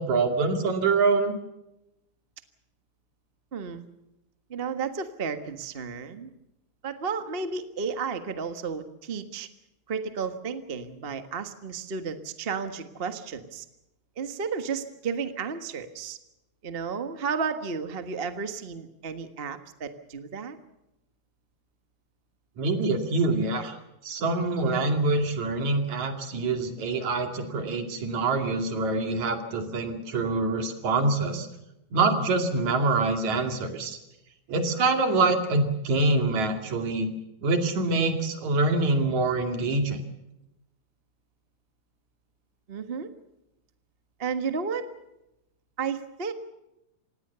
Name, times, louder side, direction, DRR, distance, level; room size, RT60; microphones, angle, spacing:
voice 1, 0.0-1.3 22.6-23.8 24.0-31.5 31.9-34.0 34.5-37.1 37.4-40.0, right 3 dB, 70° right, 5 dB, 3.8 m, -25 dB
voice 2, 3.5-3.8 4.5-6.3 6.8-9.5 9.9-13.6 14.2-16.2 16.6-20.6 42.7-43.1 44.2-44.9 45.8-46.3, right 5 dB, 35° right, 8 dB, 0.9 m, -32 dB
26.5 x 19.0 x 6.9 m, 0.90 s
omnidirectional pair, 3.4 m